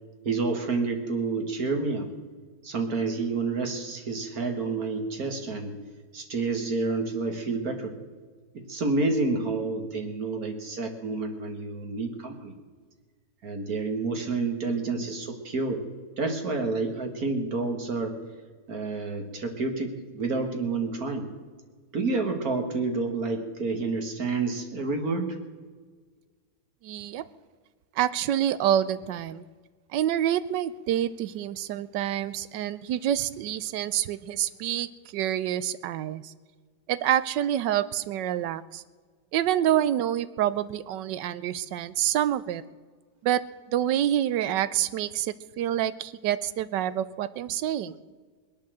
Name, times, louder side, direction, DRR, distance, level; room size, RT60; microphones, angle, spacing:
voice 1, 0.3-2.1 2.6-5.8 6.1-8.0 8.5-12.5 13.4-15.8 16.2-18.2 18.7-21.3 21.9-25.4, right 3 dB, 55° right, 5 dB, 2.1 m, -29 dB
voice 2, 26.8-27.2 28.0-29.4 29.9-36.3 36.9-38.8 39.3-42.6 43.2-43.4 43.7-48.0, right 11 dB, 80° right, 16 dB, 1.3 m, -27 dB
21.0 x 8.5 x 7.6 m, 1.5 s
omnidirectional pair, 1.9 m